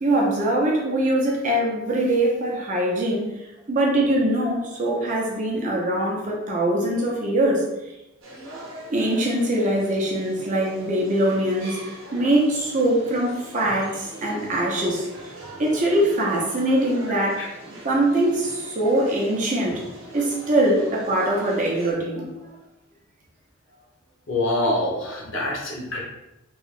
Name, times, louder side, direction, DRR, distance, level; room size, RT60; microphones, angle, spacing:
voice 1, 0.0-3.3 3.7-7.9 8.9-15.3 15.6-17.4 17.8-19.8 20.1-22.3, right 1 dB, 35° right, -3 dB, 0.7 m, -22 dB
sound 1, 8.2-21.9, right 1 dB, 60° right, 0.9 m, -41 dB
voice 2, 24.3-26.0, left 1 dB, 60° left, -1 dB, 0.8 m, -26 dB
3.1 x 2.8 x 3.2 m, 0.94 s
head